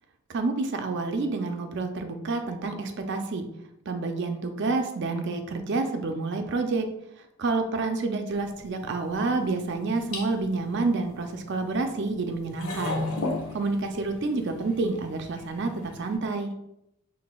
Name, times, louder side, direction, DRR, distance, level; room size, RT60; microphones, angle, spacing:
voice 1, 0.3-3.5 3.9-6.8 7.4-13.0 13.5-15.7 16.0-16.5, right 3 dB, 50° right, 5 dB, 0.4 m, -28 dB
sound 1, 8.3-16.1, left 2 dB, 70° left, 0.8 m, -37 dB
5.9 x 3.3 x 2.3 m, 0.83 s
head